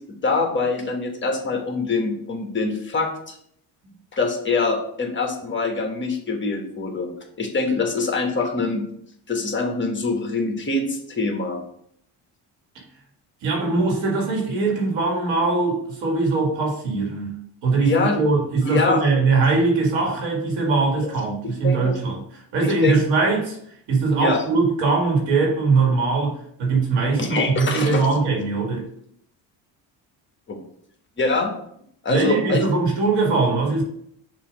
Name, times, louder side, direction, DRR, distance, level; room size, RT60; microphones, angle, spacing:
voice 1, 0.2-3.4 4.1-7.1 7.4-8.9 9.3-11.6 17.8-18.2 18.6-19.0 21.0-21.1 21.4-22.0 22.6-23.0 24.2-24.4 27.2-28.0 30.5-30.6 31.2-31.5 32.0-32.6, left 3 dB, 25° left, 2 dB, 1.2 m, -24 dB
voice 2, 13.4-17.4 17.6-23.6 23.9-26.3 26.6-28.9 32.1-33.8, right 3 dB, 85° right, 0 dB, 2.1 m, -21 dB
6.8 x 2.8 x 5.2 m, 0.69 s
cardioid pair, 120°, 43 cm